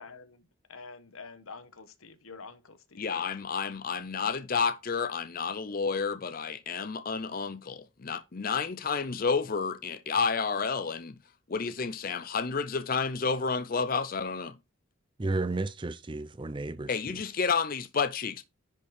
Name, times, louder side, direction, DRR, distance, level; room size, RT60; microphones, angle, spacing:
voice 1, 0.0-3.3, left 4 dB, 80° left, 1.3 m, -48 dB
voice 2, 3.0-11.2 11.5-14.6 16.9-18.4, left 5 dB, 40° left, 0.5 m, -30 dB
voice 3, 15.2-17.2, right 2 dB, 25° right, 0.5 m, -33 dB
10.5 x 4.5 x 5.0 m
head